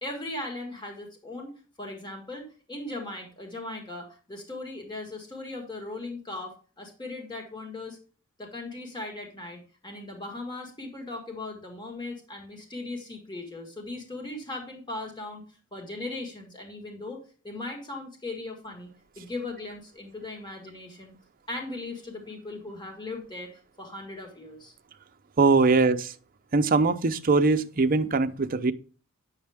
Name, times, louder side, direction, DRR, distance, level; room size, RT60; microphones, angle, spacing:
voice 1, 0.0-8.0 8.4-15.4 15.7-18.9 19.2-21.1 21.5-23.5 23.8-24.7, left 2 dB, 20° left, 1.7 m, -38 dB
voice 2, 25.4-26.1 26.5-28.7, right 3 dB, 40° right, 0.6 m, -22 dB
9.4 x 6.6 x 3.5 m
head